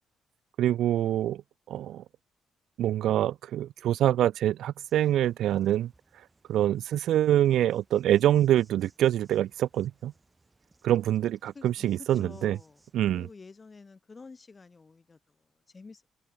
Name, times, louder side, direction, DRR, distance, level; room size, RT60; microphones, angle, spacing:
voice 1, 0.6-1.4 1.7-2.0 2.8-5.9 6.5-10.1 10.8-12.6 12.9-13.3, right 12 dB, 75° right, 0.3 m, -25 dB
Insect, 4.8-13.3, right 3 dB, 20° right, 7.1 m, -66 dB
voice 2, 11.5-12.8 13.1-16.0, left 4 dB, 30° left, 2.5 m, -49 dB
cardioid pair, 90°, 0 cm